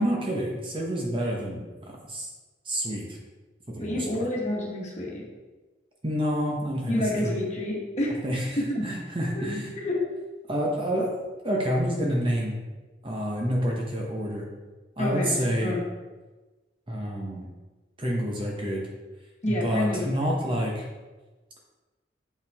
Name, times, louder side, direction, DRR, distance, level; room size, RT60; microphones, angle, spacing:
voice 1, 0.0-1.6 2.1-2.3 2.6-3.0 3.7-4.3 6.0-7.3 8.2-8.4 8.8-9.7 10.5-11.1 11.4-12.6 13.0-14.5 15.0-15.7 16.9-17.5 18.0-18.9 19.5-20.8, equal, 25° right, -2 dB, 1.0 m, -28 dB
voice 2, 3.8-5.2 6.9-8.2 8.6-8.8 9.3-9.4 9.8-10.0 15.0-15.8 19.4-20.1, left 1 dB, 35° left, -3 dB, 1.5 m, -28 dB
6.9 x 5.5 x 3.6 m, 1.2 s
head